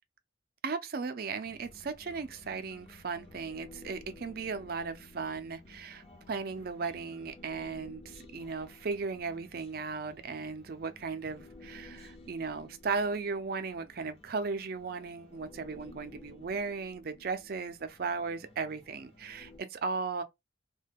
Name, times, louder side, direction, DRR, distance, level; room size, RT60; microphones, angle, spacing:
voice 1, 0.6-20.2, right 4 dB, 50° right, 0.4 m, -36 dB
Human voice, 1.4-19.6, left 2 dB, 30° left, 0.6 m, -54 dB
2.2 x 2.1 x 3.4 m
head